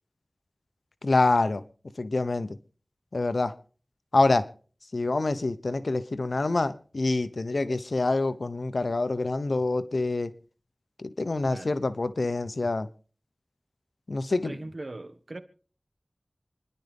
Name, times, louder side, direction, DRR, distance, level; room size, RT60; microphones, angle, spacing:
voice 1, 1.0-1.6 2.0-2.6 3.1-3.5 4.1-4.5 4.9-10.3 11.0-12.9 14.1-14.6, left 2 dB, 80° left, 0.9 m, -26 dB
voice 2, 14.2-15.4, right 2 dB, 60° right, 1.5 m, -40 dB
28.0 x 11.0 x 3.6 m
wide cardioid pair, 45°, 0 cm